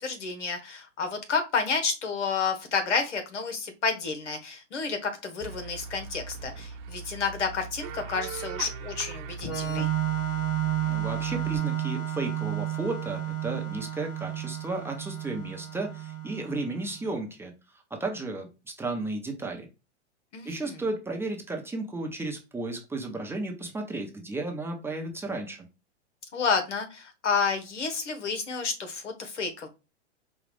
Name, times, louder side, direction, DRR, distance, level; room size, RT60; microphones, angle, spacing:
voice 1, 0.0-9.9 20.3-20.8 26.3-29.7, left 5 dB, 85° left, 6 dB, 1.4 m, -30 dB
sound 1, 5.4-11.6, right 5 dB, 45° right, 1.1 m, -40 dB
Organ, 9.4-17.0, right 11 dB, 45° left, 2.2 m, -31 dB
voice 2, 10.8-18.5 18.8-19.7 20.4-25.7, right 2 dB, 5° right, 1 dB, 0.7 m, -34 dB
5.1 x 2.3 x 3.3 m, 0.28 s
hypercardioid pair, 125°, 35 cm